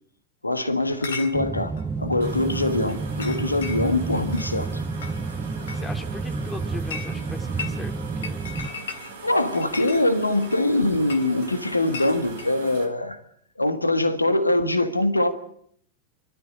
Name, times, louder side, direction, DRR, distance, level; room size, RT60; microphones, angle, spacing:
voice 1, 0.4-4.8 9.2-13.2 13.6-15.3, left 1 dB, 85° left, 1.6 m, -23 dB
Chatter / Chink clink, 0.8-12.5, left 5 dB, 65° left, 3.0 m, -40 dB
sound 1, 1.3-8.7, right 4 dB, 15° right, 0.9 m, -30 dB
sound 2, 2.2-12.9, right 4 dB, 60° right, 4.0 m, -42 dB
voice 2, 5.7-8.4, left 2 dB, 10° left, 2.3 m, -39 dB
28.5 x 13.0 x 8.9 m
figure-of-eight pair, 90°, 0 cm